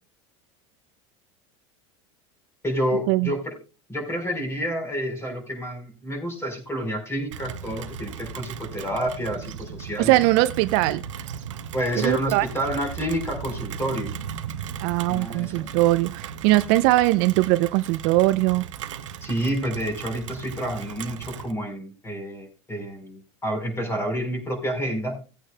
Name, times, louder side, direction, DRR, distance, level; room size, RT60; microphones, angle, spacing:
voice 1, 2.6-3.6 3.9-10.1 11.7-14.1 15.1-15.6 19.2-25.2, equal, 15° left, 4.3 m, -29 dB
Rain, 7.3-21.5, right 8 dB, 85° right, 0.8 m, -37 dB
voice 2, 10.0-11.0 12.0-12.5 14.8-18.6, right 18 dB, 60° right, 0.5 m, -21 dB
18.5 x 8.9 x 2.2 m
hypercardioid pair, 95°, 16 cm